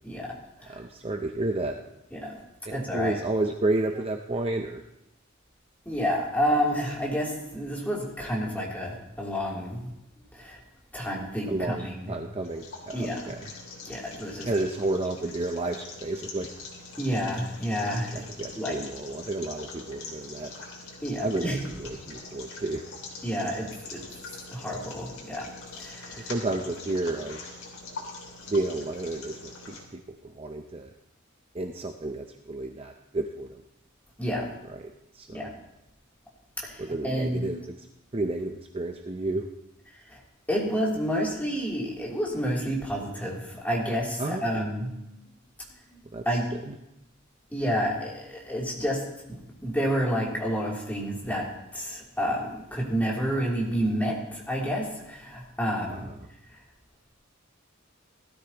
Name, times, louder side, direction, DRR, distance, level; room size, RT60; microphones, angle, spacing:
voice 1, 0.7-1.8 2.7-4.8 11.5-13.4 14.4-16.5 18.1-20.5 21.2-22.8 26.2-27.4 28.5-30.9 31.5-33.6 34.7-35.5 36.8-37.9 38.1-39.5 44.2-44.6 46.1-46.2 46.7-46.8 55.9-56.2, right 2 dB, 30° right, 4 dB, 0.6 m, -31 dB
voice 2, 2.7-3.1 5.8-9.9 10.3-10.6 10.9-12.1 12.9-13.4 13.8-14.5 17.0-18.3 18.5-18.8 21.0-21.6 23.2-24.0 24.5-26.3 34.2-34.5 35.3-35.5 36.6-37.5 40.1-40.2 40.5-44.9 45.9-46.0 46.2-46.5 47.5-51.5 51.7-56.1, equal, 10° left, -4 dB, 3.1 m, -29 dB
sound 1, 12.4-29.8, left 3 dB, 85° left, 3.0 m, -43 dB
18.5 x 13.0 x 3.0 m, 0.86 s
head